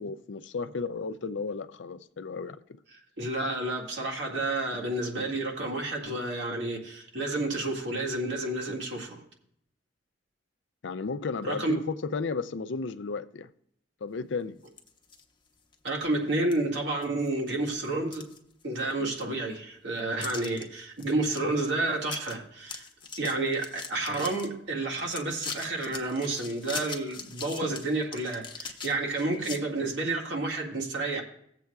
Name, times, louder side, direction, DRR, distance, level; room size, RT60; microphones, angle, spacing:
voice 1, 0.0-2.8 10.8-13.5 14.0-14.6 19.0-19.2, left 4 dB, 75° left, 0.5 m, -34 dB
voice 2, 3.2-9.2 11.4-11.8 15.8-18.3 18.6-22.8 23.2-31.2, right 2 dB, 70° right, 1.9 m, -30 dB
sound 1, 14.6-15.2 15.7-15.8 16.5-16.6 17.0-17.5 17.9-18.9 19.2-19.3 20.2-20.6 21.0-21.4 21.7-21.8 22.0-22.3 22.6-24.5 24.9-29.6, left 5 dB, 25° left, 0.9 m, -41 dB
17.5 x 7.5 x 2.3 m
head